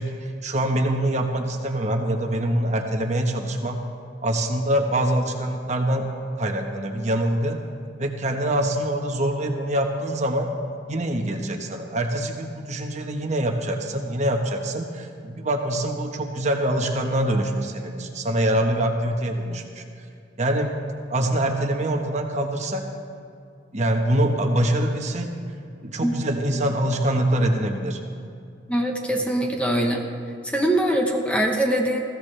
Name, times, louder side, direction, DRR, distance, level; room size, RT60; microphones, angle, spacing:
voice 1, 0.0-3.8 4.2-6.1 6.4-7.6 8.0-10.5 10.9-19.8 20.4-20.8 21.1-22.9 23.7-25.3 25.8-28.0, right 1 dB, 40° right, 3 dB, 1.2 m, -24 dB
voice 2, 28.7-30.0 30.4-32.0, right 1 dB, 5° left, 2 dB, 1.0 m, -22 dB
20.5 x 15.5 x 3.4 m, 2.4 s
head